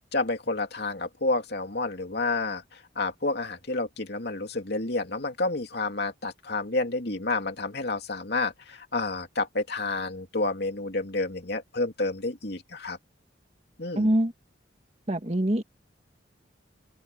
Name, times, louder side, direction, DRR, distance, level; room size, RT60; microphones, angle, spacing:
voice 1, 0.1-13.0 13.8-14.1, left 3 dB, 60° left, 3.1 m, -30 dB
voice 2, 14.0-14.3 15.1-15.6, right 1 dB, 35° right, 1.9 m, -24 dB
open air
head